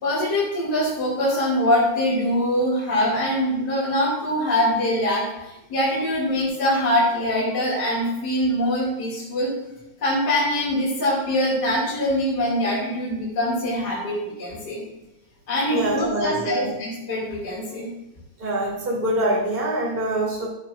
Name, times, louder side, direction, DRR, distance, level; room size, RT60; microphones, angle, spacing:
voice 1, 0.0-9.5 10.0-14.8 15.5-17.9, left 1 dB, 35° left, -7 dB, 2.9 m, -23 dB
voice 2, 15.7-16.8 18.4-20.5, right 1 dB, 20° right, -1 dB, 2.0 m, -25 dB
13.0 x 9.8 x 2.6 m, 0.95 s
omnidirectional pair, 3.4 m